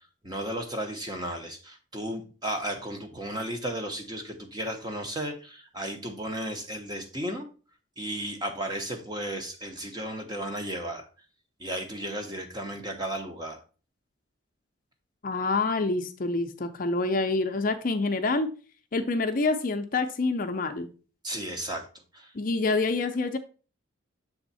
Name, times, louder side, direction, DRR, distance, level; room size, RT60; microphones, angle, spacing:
voice 1, 0.2-7.5 8.0-11.1 11.6-13.6 21.2-21.9 22.1-22.3, right 1 dB, 20° right, 4 dB, 0.8 m, -34 dB
voice 2, 15.2-18.5 18.9-20.9 22.3-23.4, left 3 dB, 45° left, 7 dB, 0.5 m, -27 dB
7.0 x 3.5 x 4.1 m, 0.36 s
head